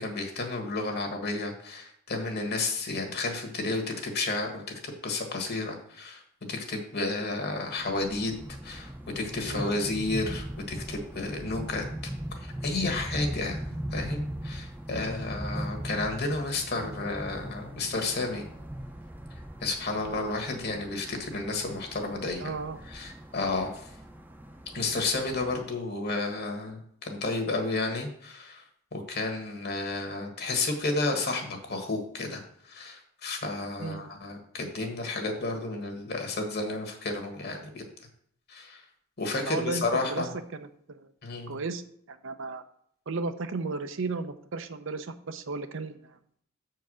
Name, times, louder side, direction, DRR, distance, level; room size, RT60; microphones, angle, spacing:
voice 1, 0.0-6.2 6.5-8.3 8.6-11.8 12.4-13.7 13.9-18.5 19.6-22.5 22.9-23.9 24.7-28.6 28.9-32.4 32.7-37.8 38.5-38.8 39.2-40.3 41.2-41.6, left 3 dB, 50° left, 4 dB, 1.5 m, -32 dB
sound 1, 7.8-25.6, right 1 dB, 10° right, 0.6 m, -39 dB
voice 2, 9.5-9.8 22.4-22.8 33.8-34.1 39.5-41.1 41.5-41.8 42.1-42.6 43.1-46.2, right 3 dB, 65° right, 9 dB, 0.6 m, -34 dB
7.1 x 4.6 x 6.2 m, 0.66 s
head